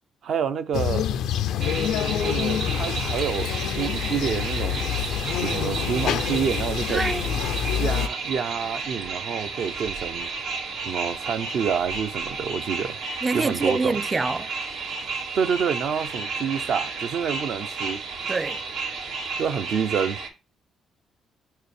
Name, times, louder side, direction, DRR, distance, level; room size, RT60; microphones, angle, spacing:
voice 1, 0.2-1.2 2.2-5.1 5.4-7.0 7.8-10.3 10.9-13.0 13.3-14.0 15.3-18.0 19.4-20.2, right 7 dB, 65° right, 0.7 m, -28 dB
sound 1, 0.7-8.1, left 9 dB, 85° left, 0.5 m, -27 dB
sound 2, 1.6-20.3, right 4 dB, 90° right, 1.8 m, -32 dB
voice 2, 6.9-7.4 13.2-14.5 18.3-18.6, right 3 dB, 25° right, 0.4 m, -26 dB
6.4 x 4.7 x 3.4 m
cardioid pair, 90°, 0 cm